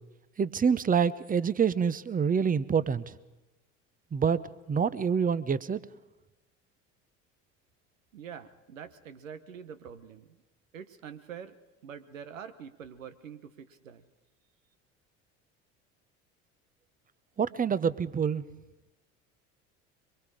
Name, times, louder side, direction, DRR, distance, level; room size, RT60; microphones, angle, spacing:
voice 1, 0.4-3.2 4.1-4.4 4.7-5.8 17.4-18.4, right 6 dB, 20° right, 17 dB, 0.8 m, -26 dB
voice 2, 8.1-10.4 10.7-11.6 11.8-14.0, right 7 dB, 85° right, 10 dB, 1.1 m, -45 dB
23.0 x 23.0 x 5.0 m, 1.1 s
hypercardioid pair, 65°, 38 cm